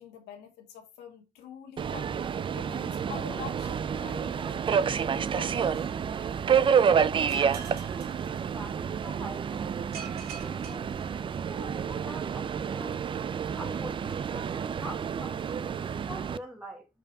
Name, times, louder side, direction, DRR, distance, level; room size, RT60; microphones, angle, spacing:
voice 1, 0.0-5.7, left 8 dB, 85° left, 1.9 m, -46 dB
Subway metro underground, 1.8-16.4, right 7 dB, 30° right, 0.4 m, -29 dB
sound 1, 7.3-9.0 9.9-11.7, right 7 dB, 75° right, 2.0 m, -46 dB
voice 2, 8.5-13.0 13.6-16.9, equal, 5° right, 1.3 m, -45 dB
5.3 x 5.0 x 4.6 m
cardioid pair, 110°, 17 cm